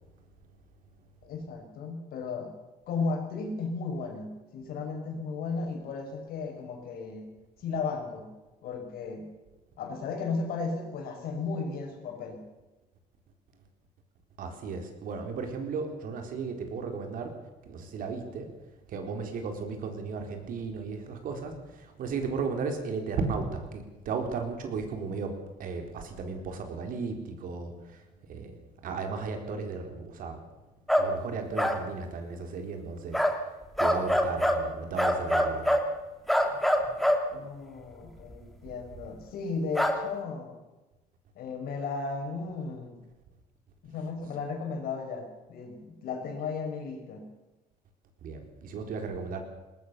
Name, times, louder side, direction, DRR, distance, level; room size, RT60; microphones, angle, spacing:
voice 1, 1.2-2.5 2.9-7.3 7.6-8.3 8.6-9.3 9.8-12.4 37.3-40.6 41.3-43.0 43.8-47.2, left 4 dB, 75° left, 3 dB, 5.9 m, -35 dB
voice 2, 14.4-17.3 17.7-18.5 18.9-25.3 25.6-27.7 28.3-28.5 28.8-30.4 31.0-33.2 33.8-35.8 48.2-49.4, right 4 dB, 65° right, 5 dB, 4.2 m, -35 dB
sound 1, 30.9-31.1 31.6-31.8 33.1-33.4 33.8-34.6 35.0-35.9 36.3-37.2 39.7-40.0, equal, ahead, 2.3 m, -24 dB
20.0 x 19.5 x 6.9 m, 1.1 s
cardioid pair, 140°, 16 cm